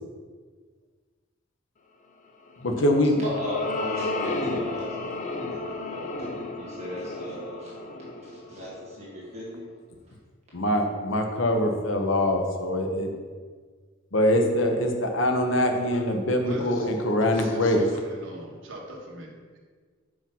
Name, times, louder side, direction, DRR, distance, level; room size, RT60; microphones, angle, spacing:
voice 1, 2.6-3.2 10.5-13.1 14.1-17.9, left 1 dB, 70° left, 3 dB, 1.0 m, -23 dB
sound 1, 2.7-9.2, left 2 dB, 40° left, 0.6 m, -33 dB
voice 2, 3.2-6.3 6.6-7.7 8.2-9.7, left 1 dB, 35° right, -6 dB, 1.6 m, -37 dB
voice 3, 16.5-16.9 17.3-19.6, right 1 dB, 70° right, -1 dB, 1.4 m, -41 dB
5.7 x 5.1 x 5.4 m, 1.5 s
head